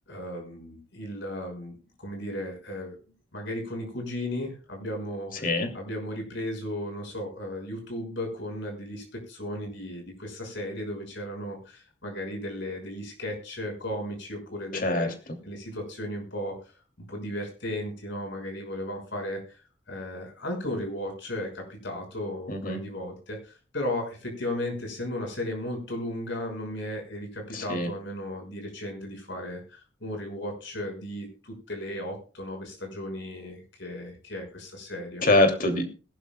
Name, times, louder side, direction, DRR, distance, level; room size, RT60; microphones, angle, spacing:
voice 1, 0.1-3.0 3.3-5.5 5.7-15.1 15.4-19.6 19.9-35.2, left 1 dB, 70° left, 2 dB, 5.9 m, -35 dB
voice 2, 14.7-15.1 22.5-22.8 27.5-27.9 35.2-35.9, left 2 dB, 50° left, 5 dB, 2.7 m, -24 dB
21.0 x 12.0 x 2.3 m, 0.34 s
head